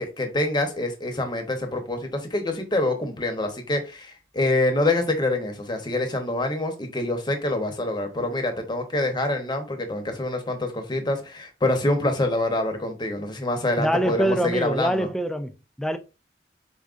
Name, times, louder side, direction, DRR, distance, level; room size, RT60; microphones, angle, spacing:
voice 1, 0.0-15.1, left 2 dB, 25° left, 0.8 m, -26 dB
voice 2, 13.8-16.0, right 1 dB, 5° left, 0.3 m, -25 dB
4.2 x 3.7 x 2.4 m
head